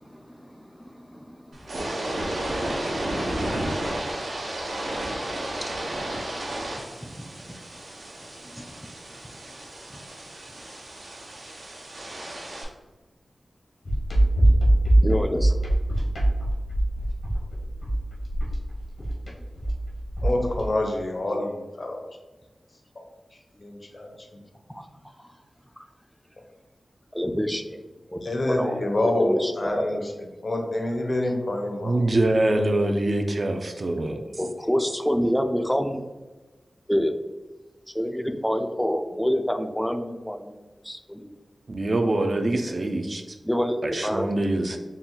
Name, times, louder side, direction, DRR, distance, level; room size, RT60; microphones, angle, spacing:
voice 1, 0.0-2.1 5.6-5.7 6.0-6.1 7.0-7.1 8.4-8.9 9.9-10.0 15.0-15.5 24.7-24.8 27.1-27.8 28.1-28.2 28.5-28.8 29.2-29.9 34.4-36.0 36.9-37.1 37.9-40.6 40.8-41.3 43.4-44.3, equal, 5° left, 6 dB, 0.4 m, -27 dB
sound 1, 1.5-12.6, right 1 dB, 85° right, 0.9 m, -32 dB
sound 2, 13.8-20.7, right 1 dB, 75° left, 1.2 m, -22 dB
voice 2, 20.2-22.0 23.6-24.1 28.2-30.1 30.4-31.9, left 1 dB, 55° left, 2 dB, 0.7 m, -26 dB
voice 3, 31.8-34.2 41.7-43.2 43.8-44.8, right 1 dB, 50° right, 5 dB, 0.5 m, -24 dB
4.2 x 2.2 x 3.8 m, 1.2 s
cardioid pair, 55°, 0 cm